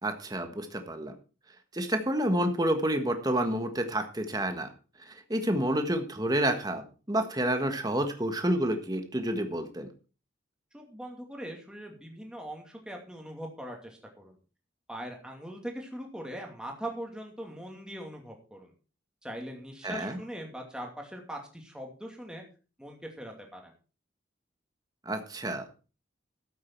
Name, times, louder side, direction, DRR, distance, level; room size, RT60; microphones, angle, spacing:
voice 1, 0.0-1.2 1.7-4.7 5.1-6.8 7.1-9.9 19.8-20.2 25.0-25.6, right 1 dB, 20° right, 6 dB, 1.4 m, -29 dB
voice 2, 10.7-14.4 14.9-18.7 19.2-22.4 22.8-23.7, equal, 5° right, 1 dB, 2.5 m, -41 dB
12.5 x 8.7 x 4.6 m, 0.35 s
head